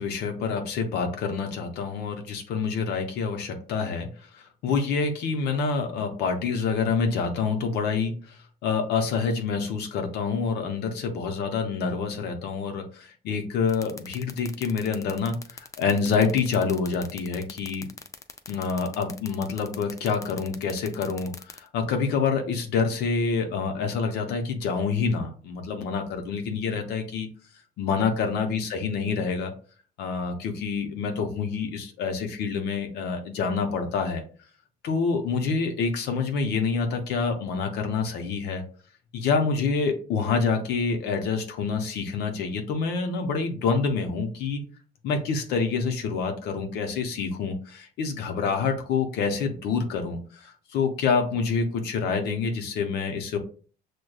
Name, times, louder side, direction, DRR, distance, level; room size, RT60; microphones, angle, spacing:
voice 1, 0.0-17.9 18.5-27.3 27.8-29.5 30.0-34.2 34.8-38.6 39.1-44.6 45.0-53.4, left 5 dB, 80° left, 4 dB, 0.6 m, -27 dB
sound 1, 13.7-21.6, left 5 dB, 20° left, 0.4 m, -40 dB
6.2 x 2.2 x 2.2 m, 0.41 s
cardioid pair, 110°, 17 cm